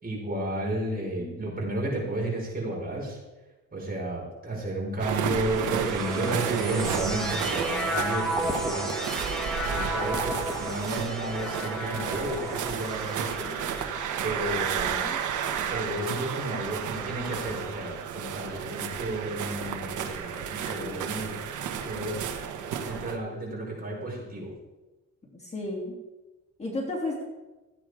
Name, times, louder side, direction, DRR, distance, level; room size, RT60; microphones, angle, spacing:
voice 1, 0.0-3.2 3.7-9.0 9.6-13.6 14.2-15.0 15.7-21.3 21.8-22.2 22.8-24.5, right 1 dB, 30° right, -2 dB, 5.0 m, -32 dB
sound 1, 5.0-23.2, right 8 dB, 80° right, 1.3 m, -32 dB
sound 2, 5.3-16.8 17.5-18.3, equal, ahead, 2.2 m, -35 dB
voice 2, 14.7-15.2 20.7-21.1 25.3-26.0 26.6-27.2, left 2 dB, 20° left, -3 dB, 3.1 m, -34 dB
14.5 x 8.8 x 5.0 m, 1.1 s
cardioid pair, 90°, 30 cm